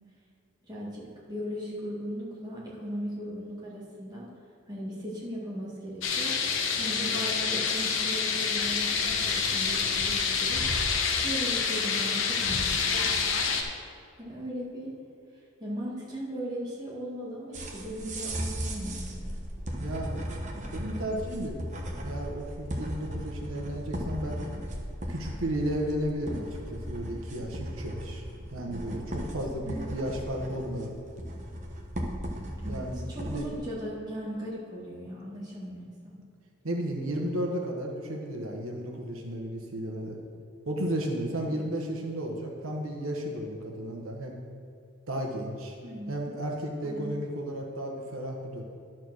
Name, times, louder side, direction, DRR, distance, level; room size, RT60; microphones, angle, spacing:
voice 1, 0.7-4.3 4.7-6.4 6.8-10.6 11.2-13.5 14.2-14.9 15.6-19.3 29.4-29.9 32.6-36.2 41.4-41.6 45.8-46.1 46.8-47.2, equal, 20° right, -7 dB, 2.0 m, -38 dB
sound 1, 6.0-13.6, left 5 dB, 70° left, 0.9 m, -27 dB
sound 2, 17.5-33.6, equal, 35° right, 1.0 m, -37 dB
voice 2, 19.7-20.2 20.7-21.6 22.0-24.4 25.1-28.2 28.5-31.0 32.7-33.5 36.6-40.2 40.7-44.4 45.1-45.8 46.1-48.6, right 1 dB, 90° right, 0 dB, 1.1 m, -33 dB
11.5 x 4.4 x 6.4 m, 2.3 s
head